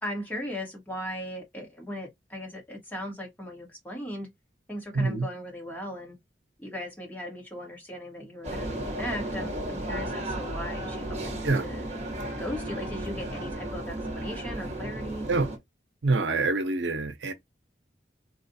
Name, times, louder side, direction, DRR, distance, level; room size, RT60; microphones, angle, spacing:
voice 1, 0.0-4.3 4.7-6.2 6.6-11.9 12.4-15.3, equal, 10° left, 1.3 m, -38 dB
voice 2, 4.9-5.3 11.4-11.7 15.3-15.5 16.0-17.3, right 3 dB, 85° right, 0.6 m, -26 dB
sound 1, 8.4-15.6, right 1 dB, 40° right, 1.2 m, -34 dB
4.2 x 2.4 x 2.6 m
head